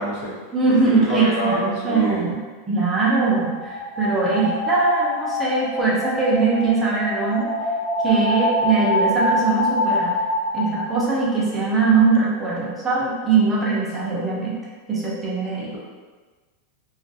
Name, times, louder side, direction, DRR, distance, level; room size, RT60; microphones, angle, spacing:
voice 1, 0.0-0.3 0.7-2.3 15.5-15.8, equal, 70° left, -5 dB, 0.9 m, -26 dB
voice 2, 0.5-2.4 2.7-7.5 8.0-10.2 10.5-14.6 14.9-15.7, right 4 dB, 15° right, -6 dB, 0.6 m, -21 dB
sound 1, 3.3-11.1, left 1 dB, 20° left, 0.9 m, -25 dB
2.4 x 2.3 x 2.6 m, 1.4 s
supercardioid pair, 150°, 0 cm